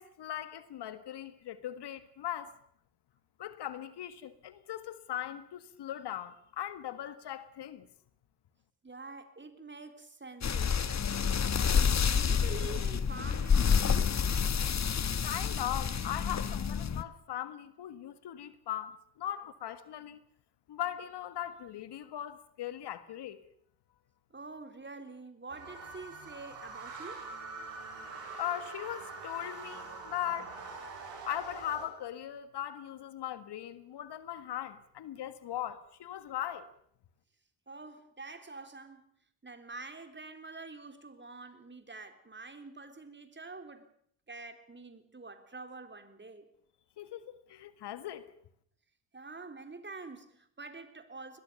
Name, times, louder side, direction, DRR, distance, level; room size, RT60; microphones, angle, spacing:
voice 1, 0.0-2.5 3.4-7.9 15.2-20.2 20.7-23.4 28.4-30.6 31.2-36.7 47.0-48.2, left 11 dB, 60° left, 1.7 m, -39 dB
voice 2, 8.8-10.8 12.1-14.2 16.2-16.3 24.3-27.3 37.7-39.1 39.4-43.9 44.3-46.5 49.1-51.4, right 3 dB, 25° right, 3.9 m, -46 dB
sound 1, 10.4-17.0, left 6 dB, 35° left, 1.5 m, -28 dB
sound 2, 25.5-31.9, right 4 dB, 65° right, 8.0 m, -44 dB
23.0 x 20.5 x 7.0 m
hypercardioid pair, 50°, 47 cm